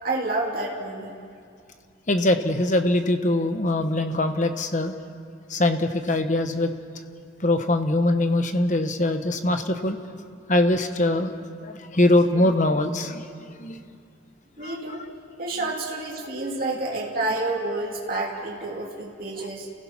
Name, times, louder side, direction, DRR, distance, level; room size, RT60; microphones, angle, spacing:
voice 1, 0.0-1.1 14.6-15.1 15.4-19.7, right 2 dB, 50° right, -4 dB, 2.8 m, -29 dB
voice 2, 2.1-4.9 5.5-6.7 7.4-10.0 10.5-11.3 11.6-13.3 13.6-13.8 14.6-14.8, left 1 dB, 40° left, 7 dB, 1.2 m, -22 dB
30.0 x 16.0 x 5.9 m, 2.3 s
head